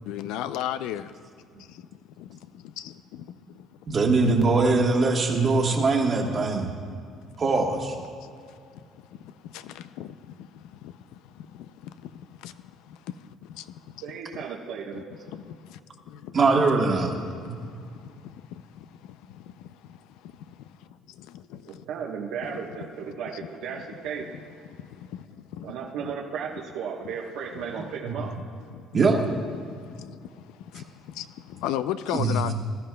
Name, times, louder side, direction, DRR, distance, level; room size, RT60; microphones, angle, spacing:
voice 1, 0.0-1.1 1.6-1.9 2.2-3.7 8.2-8.6 8.9-14.0 14.9-15.8 16.1-16.3 17.3-21.8 22.8-22.9 24.7-26.1 28.7-28.9 29.6-32.5, left 11 dB, 80° left, 0.4 m, -38 dB
voice 2, 3.9-6.7 7.4-8.0 16.3-17.1 17.4-17.6 28.0-28.1 28.9-29.2 32.1-32.4, right 3 dB, 25° right, 1.2 m, -22 dB
voice 3, 14.0-15.0 21.7-24.3 25.6-28.3, right 6 dB, 75° right, 1.1 m, -35 dB
20.5 x 12.5 x 2.2 m
cardioid pair, 170°, 0 cm